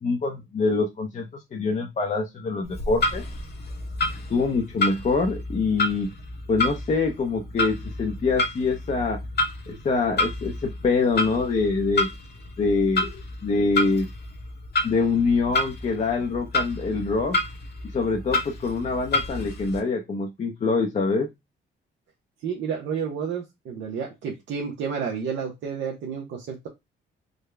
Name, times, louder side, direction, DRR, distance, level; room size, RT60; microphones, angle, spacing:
voice 1, 0.0-3.2 4.3-6.1 6.5-9.2 9.7-12.1 12.6-14.1 14.8-17.4 17.9-21.3, left 4 dB, 35° left, 2 dB, 0.6 m, -25 dB
Clock, 2.6-19.8, left 2 dB, 55° left, 1.0 m, -30 dB
voice 2, 22.4-26.7, right 6 dB, 70° right, 0 dB, 0.8 m, -30 dB
3.8 x 2.2 x 3.3 m, 0.20 s
cardioid pair, 90°, 20 cm